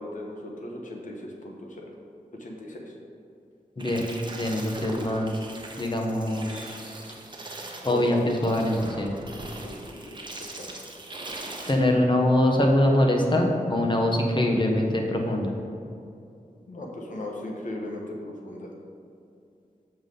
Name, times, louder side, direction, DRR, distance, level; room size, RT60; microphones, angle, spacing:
voice 1, 0.0-1.9 2.3-2.9 7.8-8.2 9.6-10.2 10.5-10.7 16.7-18.7, left 1 dB, 65° left, 0 dB, 1.1 m, -37 dB
sound 1, 3.8-11.7, right 2 dB, 35° right, 0.9 m, -40 dB
voice 2, 4.3-5.3 5.8-6.7 7.8-9.1 11.7-15.5, left 1 dB, 35° left, 1 dB, 1.1 m, -23 dB
7.1 x 5.5 x 3.9 m, 2.5 s
wide cardioid pair, 70°, 14 cm